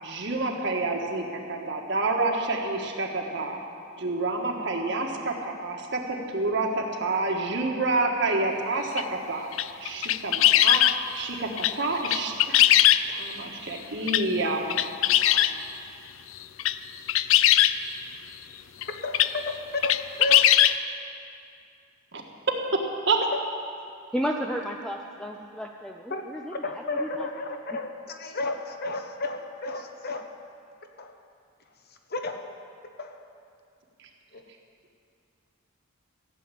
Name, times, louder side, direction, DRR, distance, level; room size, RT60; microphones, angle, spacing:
voice 1, 0.0-3.6 4.0-9.5 9.8-10.8 11.1-12.8 13.1-15.4 22.1-22.2 23.1-23.2, right 3 dB, 55° right, 1 dB, 1.6 m, -28 dB
sound 1, 9.0-9.1 9.5-11.0 11.6-11.7 12.0-13.3 14.1-14.2 14.7-15.5 16.4-16.8 17.1-17.7 18.8-18.9 19.1-19.3 19.8-20.8, left 12 dB, 70° left, 0.4 m, -20 dB
voice 2, 18.8-20.6 23.3-23.4 26.1-30.3 31.0-31.2 32.1-32.5 33.0-33.2 34.3-34.4, left 2 dB, 45° left, 5 dB, 1.1 m, -33 dB
voice 3, 24.1-26.5 27.0-27.3, equal, 5° left, 2 dB, 0.5 m, -32 dB
15.0 x 7.7 x 9.1 m, 2.4 s
head